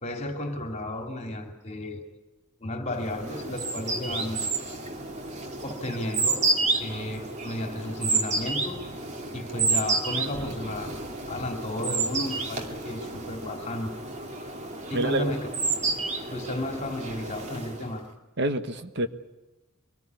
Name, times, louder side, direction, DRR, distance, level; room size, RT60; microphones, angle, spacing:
voice 1, 0.0-2.0 2.6-4.4 5.6-6.5 6.8-8.8 9.3-11.0 11.3-13.9 14.9-15.5 16.3-18.1, left 1 dB, 30° left, 4 dB, 2.8 m, -33 dB
sound 1, 3.0-18.0, right 3 dB, 30° right, 2.4 m, -30 dB
voice 2, 14.9-15.3 18.4-19.1, right 1 dB, 55° right, 9 dB, 1.4 m, -27 dB
24.0 x 19.5 x 9.5 m, 1.1 s
head